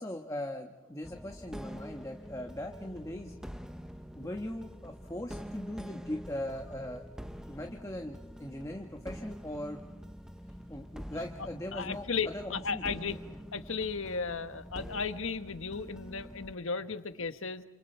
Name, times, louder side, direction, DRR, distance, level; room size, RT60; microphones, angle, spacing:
voice 1, 0.0-3.4 4.1-7.0 7.5-9.8 10.7-13.0, left 1 dB, 15° left, 3 dB, 1.3 m, -40 dB
sound 1, 1.0-16.6, equal, 5° right, 0.8 m, -46 dB
voice 2, 11.7-13.2 13.5-17.6, left 5 dB, 75° left, 9 dB, 1.4 m, -35 dB
29.0 x 28.0 x 4.5 m, 1.1 s
head